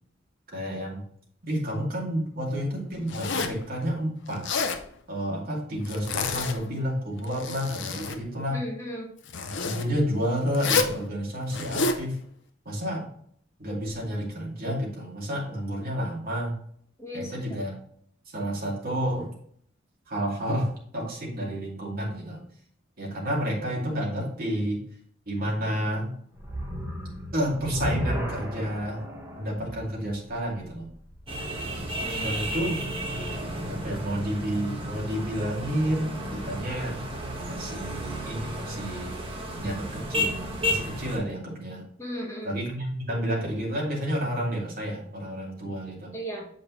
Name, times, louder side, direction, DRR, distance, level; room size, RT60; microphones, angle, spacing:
voice 1, 0.5-1.0 1.4-4.4 5.1-8.6 9.4-12.2 12.7-13.1 13.6-16.6 17.1-17.7 18.3-19.3 20.1-22.4 23.0-24.8 25.3-26.1 26.7-26.8 27.3-29.0 29.3-30.9 32.1-32.8 33.6-37.0 37.5-39.2 39.6-41.8 42.4-46.1, equal, 50° right, -3 dB, 2.5 m, -30 dB
Zipper (clothing), 3.1-3.6 4.3-4.8 5.8-6.7 7.2-8.2 9.3-9.8 10.5-11.0 11.5-12.0, left 4 dB, 65° left, 0.7 m, -29 dB
voice 2, 8.5-9.1 17.0-17.6 31.9-32.3 42.0-42.6 46.1-46.5, equal, 15° left, -2 dB, 1.6 m, -36 dB
sound 1, 26.4-31.7, equal, 15° right, 1.6 m, -34 dB
sound 2, 31.3-41.2, equal, 30° right, 1.3 m, -32 dB
7.6 x 5.2 x 3.1 m, 0.63 s
head